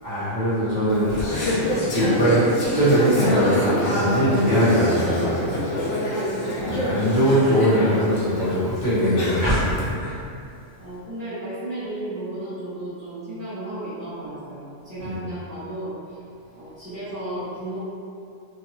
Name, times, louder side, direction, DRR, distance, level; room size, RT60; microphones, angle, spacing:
voice 1, 0.0-5.7 6.7-10.2 15.0-15.2, equal, 40° left, -14 dB, 1.3 m, -21 dB
Conversation / Chatter, 0.9-9.8, equal, 75° left, 1.0 m, -26 dB
voice 2, 10.8-16.2 16.5-17.8, right 1 dB, 10° right, -18 dB, 0.8 m, -34 dB
3.0 x 2.6 x 2.8 m, 2.5 s
omnidirectional pair, 1.3 m